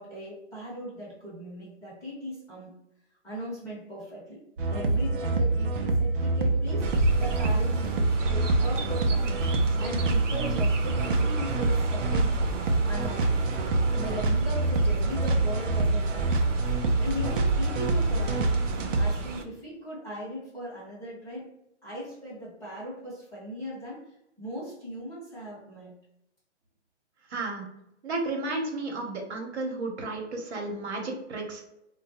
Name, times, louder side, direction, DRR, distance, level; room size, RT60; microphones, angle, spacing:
voice 1, 0.0-2.8 3.2-4.4 4.7-6.9 7.2-9.4 9.8-13.4 14.0-16.6 17.0-18.5 18.9-21.5 21.8-26.0, equal, 10° left, -9 dB, 0.9 m, -38 dB
sound 1, 4.6-19.2, right 2 dB, 45° right, 0.5 m, -26 dB
Chirp tweet, 6.8-19.4, right 3 dB, 90° right, 0.7 m, -33 dB
voice 2, 27.3-27.6 28.0-31.6, right 2 dB, 65° right, 1 dB, 1.0 m, -33 dB
3.7 x 2.2 x 2.8 m, 0.84 s
hypercardioid pair, 155°, 36 cm